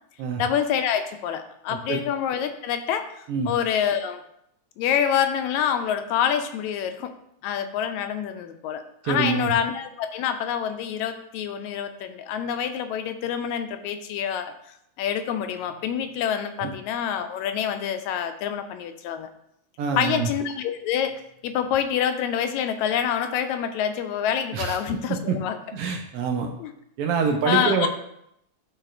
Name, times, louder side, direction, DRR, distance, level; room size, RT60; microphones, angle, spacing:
voice 1, 0.4-3.1 3.5-4.2 4.8-7.1 7.4-14.5 15.0-19.3 20.0-25.6 26.6-26.7 27.5-27.9, left 8 dB, 80° left, 8 dB, 1.9 m, -26 dB
voice 2, 9.0-9.5 16.6-16.7 19.8-20.3 24.5-24.8 25.1-25.4 25.7-26.5 27.0-27.9, right 6 dB, 85° right, 3 dB, 1.3 m, -25 dB
12.0 x 4.1 x 2.5 m, 0.76 s
omnidirectional pair, 3.4 m